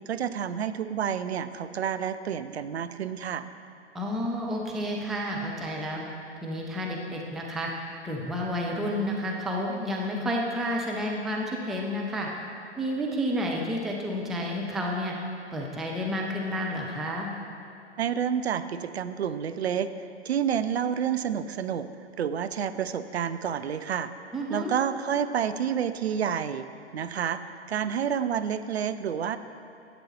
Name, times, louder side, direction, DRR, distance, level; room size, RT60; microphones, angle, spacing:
voice 1, 0.1-3.5 18.0-19.9 20.2-21.9 22.2-24.1 24.5-27.4 27.7-29.4, right 8 dB, 65° right, 11 dB, 0.5 m, -29 dB
voice 2, 3.9-6.0 6.4-7.7 8.0-12.3 12.8-15.1 15.5-17.3 24.3-24.7, equal, ahead, -1 dB, 0.4 m, -30 dB
11.0 x 8.2 x 4.2 m, 2.5 s
figure-of-eight pair, 105°, 34 cm